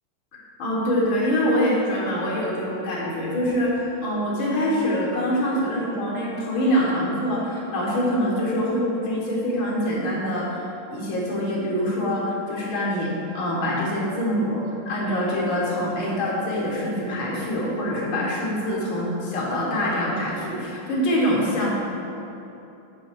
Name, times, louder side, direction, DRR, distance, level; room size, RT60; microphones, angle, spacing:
voice 1, 0.3-10.6 10.9-21.7, equal, 85° left, -5 dB, 2.1 m, -25 dB
6.5 x 5.7 x 4.5 m, 2.9 s
omnidirectional pair, 2.1 m